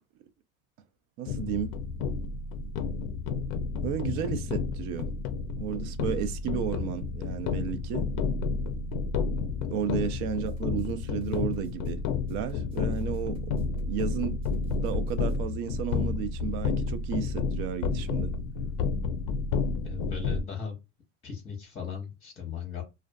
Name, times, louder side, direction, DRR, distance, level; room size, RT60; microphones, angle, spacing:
voice 1, 1.2-1.7 3.8-5.1 5.6-8.1 9.7-12.0 12.3-13.5 13.9-18.3, right 9 dB, 55° right, 0.5 m, -33 dB
sound 1, 1.3-20.4, left 4 dB, 55° left, 0.5 m, -31 dB
sound 2, 10.4-15.4, right 1 dB, 15° right, 0.9 m, -51 dB
voice 2, 19.8-20.8 21.2-22.8, left 7 dB, 20° left, 0.7 m, -37 dB
2.4 x 2.2 x 2.2 m
cardioid pair, 140°, 35 cm